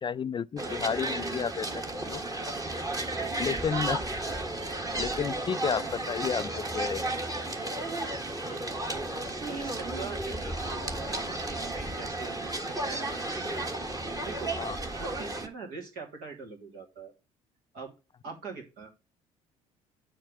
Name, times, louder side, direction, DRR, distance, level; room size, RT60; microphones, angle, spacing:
voice 1, 0.0-2.2 3.4-4.0 5.0-7.0 14.6-14.8, left 7 dB, 30° left, 0.4 m, -32 dB
sound 1, 0.6-15.5, right 2 dB, 20° right, 1.5 m, -33 dB
voice 2, 8.5-9.1 9.5-13.6 14.1-14.6 14.9-17.1 17.7-17.9 18.2-18.9, right 4 dB, 65° right, 3.0 m, -43 dB
7.4 x 4.6 x 5.7 m
hypercardioid pair, 55°, 17 cm